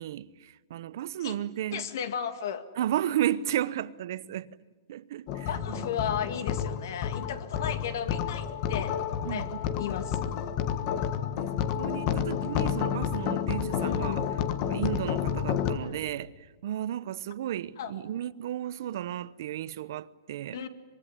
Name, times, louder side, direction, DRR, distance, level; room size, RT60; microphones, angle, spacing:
voice 1, 0.0-1.9 2.8-4.5 4.9-5.9 9.3-9.5 11.3-14.3 14.6-20.6, right 11 dB, 55° right, 0.8 m, -33 dB
voice 2, 1.7-2.6 5.5-9.0 9.3-9.5 9.8-10.2 13.8-14.2 15.8-16.0 17.8-17.9 20.5-20.7, left 8 dB, 55° left, 2.1 m, -34 dB
sound 1, 5.3-15.8, left 8 dB, 30° left, 1.3 m, -30 dB
24.5 x 23.0 x 9.9 m
hypercardioid pair, 165°, 2 cm